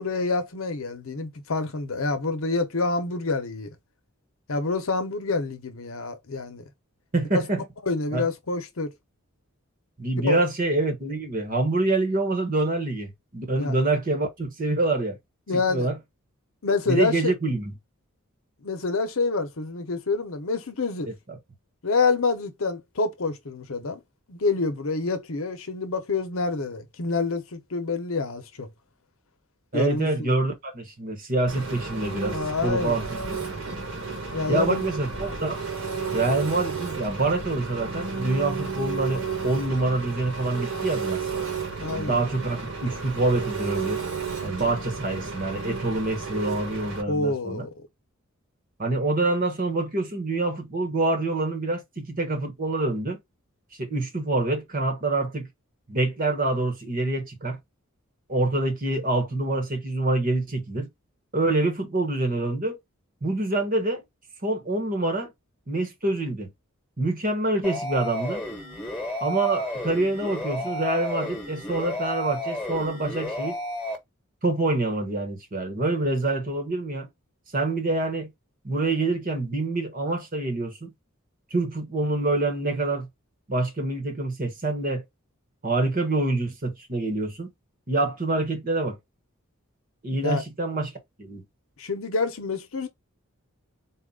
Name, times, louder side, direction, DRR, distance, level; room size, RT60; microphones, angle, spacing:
voice 1, 0.0-3.7 4.5-6.6 7.9-8.9 10.2-10.4 13.6-13.7 15.5-15.9 16.6-17.3 18.6-21.1 21.8-24.0 24.3-28.7 29.7-30.4 32.3-33.0 34.3-34.8 41.8-42.2 47.1-47.9 90.2-90.4 91.8-92.9, left 3 dB, 75° left, 0.9 m, -27 dB
voice 2, 7.1-7.6 8.1-8.2 10.0-15.2 15.5-16.0 16.9-17.7 21.1-21.4 29.7-33.4 34.5-35.6 36.1-41.2 41.9-44.0 44.4-47.7 48.8-53.2 53.8-55.5 55.9-57.6 58.3-60.9 61.3-62.8 63.2-64.0 64.4-65.3 65.7-66.5 67.0-68.4 69.2-73.6 74.4-77.1 77.5-78.3 78.6-80.9 81.5-83.1 83.5-85.0 85.6-87.5 87.9-89.0 90.0-90.9 91.2-91.4, right 2 dB, 40° right, 1.2 m, -26 dB
Engine, 31.5-47.0, right 4 dB, 70° right, 1.6 m, -32 dB
sound 1, 67.6-74.0, left 1 dB, 5° left, 1.4 m, -32 dB
4.2 x 2.4 x 3.7 m
head